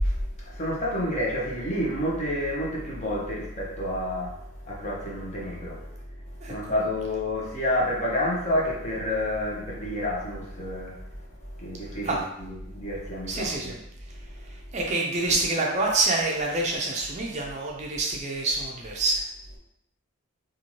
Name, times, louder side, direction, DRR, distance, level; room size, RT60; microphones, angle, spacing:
voice 1, 0.0-4.4 4.6-5.8 6.4-10.9 11.6-13.7, left 1 dB, 30° left, -4 dB, 0.7 m, -29 dB
voice 2, 13.3-13.8 14.4-19.2, right 2 dB, 35° right, -1 dB, 0.4 m, -27 dB
2.6 x 2.4 x 3.0 m, 0.80 s
head